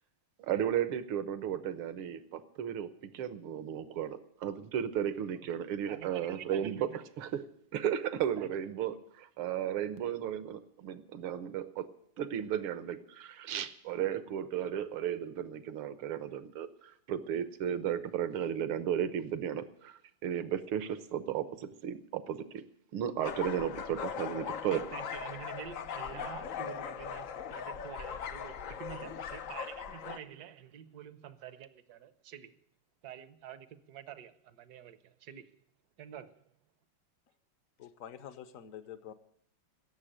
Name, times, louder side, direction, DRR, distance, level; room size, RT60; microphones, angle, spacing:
voice 1, 0.4-6.9 7.2-7.3 7.7-11.9 12.2-22.6 22.9-24.9, right 9 dB, 75° right, 13 dB, 1.8 m, -34 dB
voice 2, 5.9-7.0 8.4-8.5 24.2-32.6 33.0-35.5 36.0-36.4, right 9 dB, 60° right, 14 dB, 1.1 m, -48 dB
sound 1, 23.2-30.2, left 7 dB, 75° left, 0.7 m, -40 dB
voice 3, 37.8-39.1, left 9 dB, 55° left, 12 dB, 1.0 m, -47 dB
17.0 x 7.3 x 10.0 m, 0.71 s
omnidirectional pair, 2.4 m